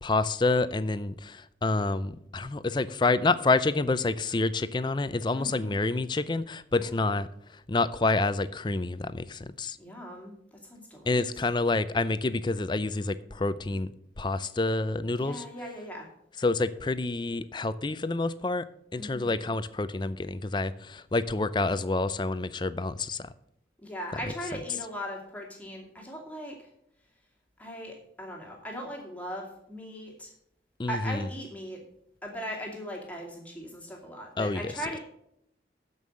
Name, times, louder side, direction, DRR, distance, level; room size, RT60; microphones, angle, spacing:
voice 1, 0.0-9.8 11.1-13.9 14.2-15.4 16.4-18.6 18.9-23.3 30.8-31.3 34.4-34.7, left 3 dB, 25° left, 0.5 m, -28 dB
voice 2, 5.3-5.8 6.7-7.0 9.8-11.2 15.1-16.1 19.0-19.4 23.8-26.7 27.6-30.3 30.9-31.8 32.2-35.0, equal, 10° left, 2.3 m, -39 dB
12.5 x 5.5 x 6.4 m
head